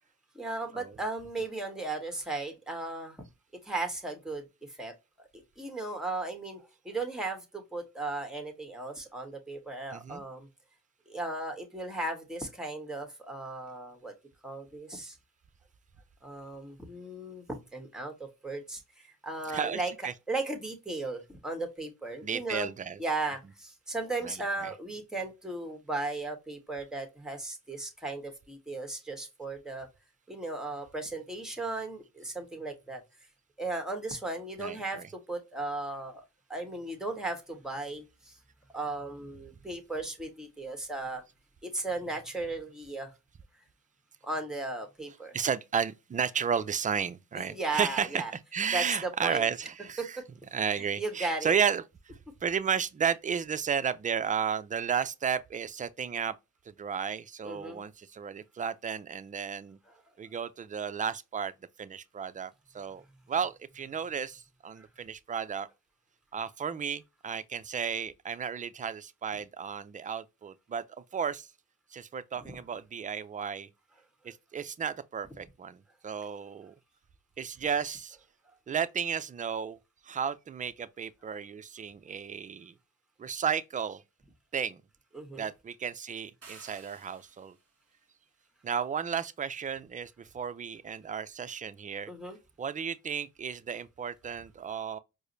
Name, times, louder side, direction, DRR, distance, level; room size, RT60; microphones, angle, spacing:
voice 1, 0.3-3.2 3.6-10.5 11.1-14.1 14.4-15.2 16.2-17.4 17.7-18.1 18.4-22.7 23.0-29.9 30.3-33.0 33.6-35.0 35.3-36.2 36.5-38.4 38.7-41.2 41.6-43.1 44.2-45.3 47.5-48.3 48.7-49.5 50.0-50.2 50.7-51.5 57.4-57.8 59.9-60.0 64.8-64.9 72.4-72.5 85.1-85.5 92.1-92.4, right 2 dB, ahead, 1.2 m, -36 dB
voice 2, 9.9-10.2 19.5-20.1 22.2-23.0 24.2-24.3 24.6-24.7 34.6-35.1 45.3-48.2 48.5-50.2 50.5-56.3 56.7-59.8 60.2-61.5 61.8-63.0 63.3-65.7 66.3-70.8 71.1-71.5 71.9-73.7 74.2-76.7 77.4-78.2 78.7-79.8 80.1-82.7 83.2-84.0 84.5-84.8 85.4-87.5 88.6-92.1 92.6-95.0, right 7 dB, 25° right, 0.4 m, -33 dB
sound 1, 86.4-87.7, right 4 dB, 40° right, 1.5 m, -53 dB
4.7 x 2.0 x 2.6 m
cardioid pair, 65°, 35 cm